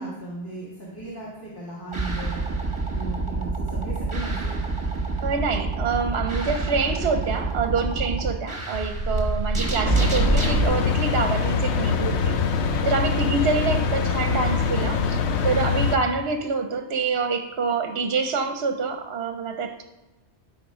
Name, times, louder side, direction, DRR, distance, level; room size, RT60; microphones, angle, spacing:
voice 1, 0.0-2.5 2.9-4.6 9.6-9.8, right 2 dB, 20° left, -7 dB, 1.8 m, -36 dB
sound 1, 1.9-10.6, right 3 dB, 25° right, 1.3 m, -26 dB
voice 2, 5.2-12.4 12.8-15.2 15.4-19.8, right 4 dB, 65° right, 6 dB, 0.9 m, -26 dB
sound 2, 9.9-16.0, left 5 dB, 70° left, 1.0 m, -23 dB
12.5 x 4.3 x 4.9 m, 1.1 s
omnidirectional pair, 1.2 m